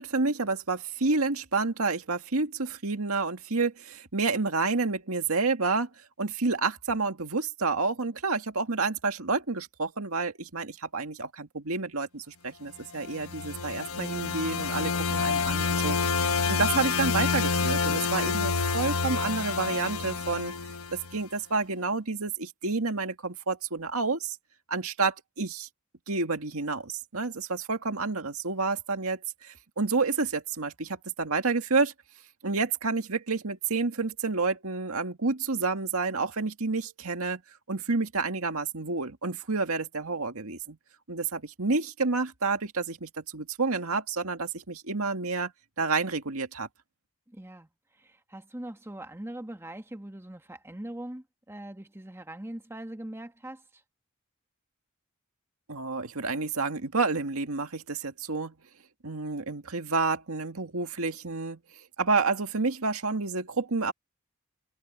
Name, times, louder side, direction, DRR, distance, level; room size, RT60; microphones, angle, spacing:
voice 1, 0.0-5.9 6.2-20.5 20.9-24.4 24.7-25.7 26.1-31.9 32.4-37.4 37.7-40.8 41.1-45.5 45.8-46.7 55.7-58.5 59.0-61.6 62.0-63.9, right 4 dB, 80° right, 2.0 m, -29 dB
sound 1, 13.0-21.2, left 5 dB, 80° left, 1.2 m, -28 dB
voice 2, 47.3-47.7 48.0-53.6, right 1 dB, 10° right, 1.5 m, -41 dB
head